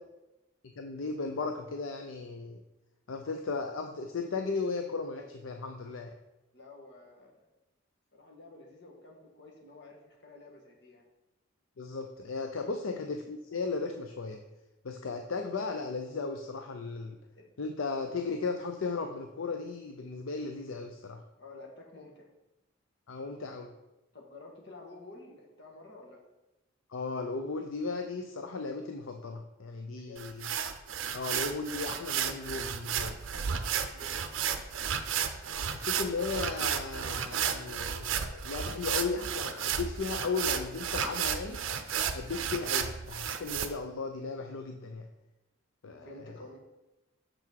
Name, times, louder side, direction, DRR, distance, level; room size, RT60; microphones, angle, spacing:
voice 1, 0.8-2.6 3.1-6.1 11.8-14.4 14.8-17.2 17.6-21.2 23.1-23.7 26.9-30.5 31.1-33.2 35.7-41.6 42.1-45.1 45.8-46.4, left 4 dB, 70° left, 5 dB, 0.5 m, -36 dB
voice 2, 6.5-7.5 8.1-11.1 17.4-17.5 21.4-22.3 24.1-26.2 30.0-30.2 33.9-35.0 45.9-46.6, left 2 dB, 55° left, 0 dB, 1.7 m, -51 dB
sound 1, 30.2-43.7, right 8 dB, 65° right, 0.6 m, -33 dB
6.8 x 5.9 x 4.5 m, 0.99 s
head